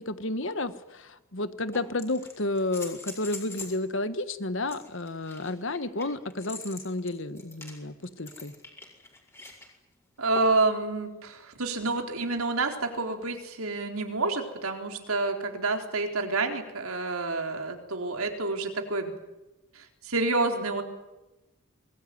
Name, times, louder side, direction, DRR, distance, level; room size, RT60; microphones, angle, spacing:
voice 1, 0.0-8.5, left 2 dB, 55° left, 12 dB, 1.4 m, -31 dB
sound 1, 0.7-0.8 1.7-3.8 4.7-9.7 10.4-10.7 12.3-12.4, left 3 dB, 10° left, 5.1 m, -44 dB
voice 2, 10.2-19.1 19.7-20.8, right 3 dB, 75° right, 4 dB, 4.1 m, -28 dB
25.0 x 21.0 x 9.6 m, 1.0 s
head